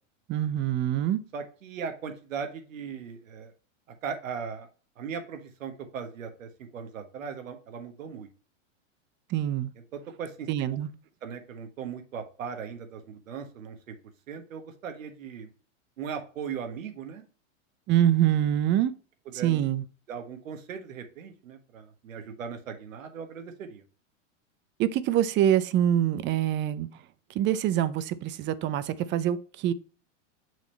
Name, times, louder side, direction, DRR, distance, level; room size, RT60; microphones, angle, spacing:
voice 1, 0.3-1.2 9.3-9.7 10.5-10.9 17.9-18.9 19.4-19.8 24.8-26.9 27.3-29.7, right 11 dB, 30° right, 0.5 m, -25 dB
voice 2, 1.3-3.5 3.9-4.7 5.0-8.3 9.9-10.5 11.2-14.0 14.3-15.5 16.0-17.2 19.2-19.6 20.1-23.8, right 6 dB, 85° right, 1.4 m, -38 dB
6.3 x 3.6 x 4.2 m
hypercardioid pair, 115°, 39 cm